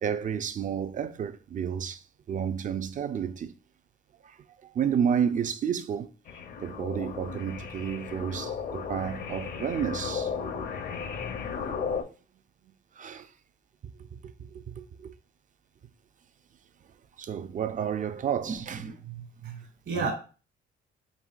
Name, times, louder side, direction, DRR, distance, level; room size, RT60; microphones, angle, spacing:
voice 1, 0.0-2.0 2.3-3.5 4.2-4.4 4.7-6.1 6.6-10.3 13.0-13.3 14.1-15.1 17.2-18.8 20.0-20.1, right 8 dB, 40° right, 0.4 m, -31 dB
sound 1, 6.3-12.0, left 6 dB, 50° left, 0.6 m, -35 dB
voice 2, 18.5-20.1, right 4 dB, 65° right, 1.4 m, -34 dB
5.3 x 2.7 x 2.3 m
cardioid pair, 90°, 20 cm